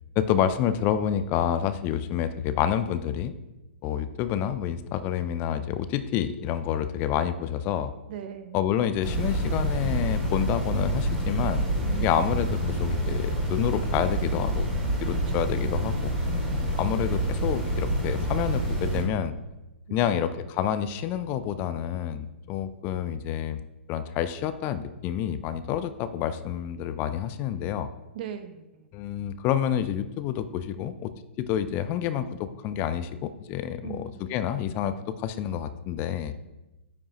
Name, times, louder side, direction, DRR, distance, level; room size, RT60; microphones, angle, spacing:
voice 1, 0.2-3.3 3.8-7.9 8.5-11.7 12.0-14.7 15.0-16.1 16.7-19.3 19.9-23.6 23.9-27.9 28.9-31.1 31.4-36.3, left 10 dB, 30° left, 12 dB, 0.4 m, -28 dB
voice 2, 8.1-8.6 11.8-12.1 15.3-15.4 19.9-20.1 28.1-28.9 33.8-34.1, right 9 dB, 50° right, 9 dB, 0.8 m, -39 dB
sound 1, 9.0-19.0, right 1 dB, ahead, 2.6 m, -27 dB
9.3 x 5.3 x 2.9 m, 1.0 s
hypercardioid pair, 120°, 7 cm